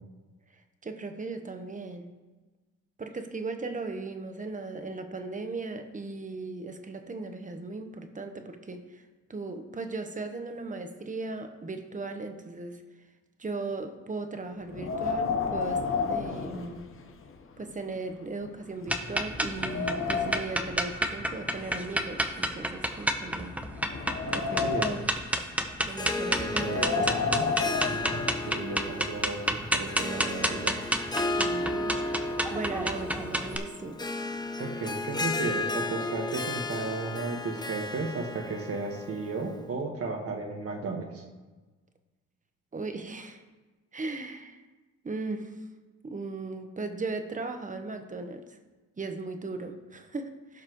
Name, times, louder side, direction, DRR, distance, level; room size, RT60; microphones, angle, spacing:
voice 1, 0.8-2.1 3.0-9.0 9.3-12.8 13.4-16.9 17.6-23.6 24.3-25.0 25.8-27.2 31.4-32.1 32.5-34.0 42.7-43.4 43.9-44.6 45.0-45.6 46.0-48.6 49.0-50.6, right 3 dB, 25° right, 7 dB, 1.1 m, -37 dB
Wind, 14.7-17.3 17.7-17.8 18.4-18.5 19.0-20.6 21.5-23.0 23.6-25.2 26.5-28.6, left 5 dB, 45° left, 1.0 m, -32 dB
sound 1, 18.9-33.6, right 1 dB, 5° right, 0.9 m, -30 dB
Harp, 25.9-39.6, left 2 dB, 15° left, 0.8 m, -34 dB
voice 2, 26.4-27.5 27.8-30.8 34.6-41.2, right 3 dB, 50° right, 2 dB, 1.6 m, -34 dB
16.0 x 5.8 x 3.1 m, 1.2 s
cardioid pair, 90°, 30 cm